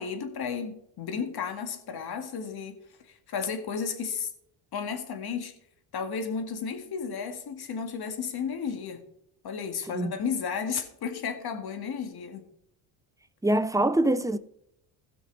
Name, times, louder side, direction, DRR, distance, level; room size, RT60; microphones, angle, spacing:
voice 1, 0.0-2.8 3.0-4.3 4.7-5.5 5.9-9.1 9.4-12.5, left 6 dB, 50° left, 2.0 m, -33 dB
voice 2, 13.4-14.4, right 1 dB, 5° right, 0.5 m, -24 dB
16.5 x 6.0 x 4.0 m
cardioid pair, 105°, 48 cm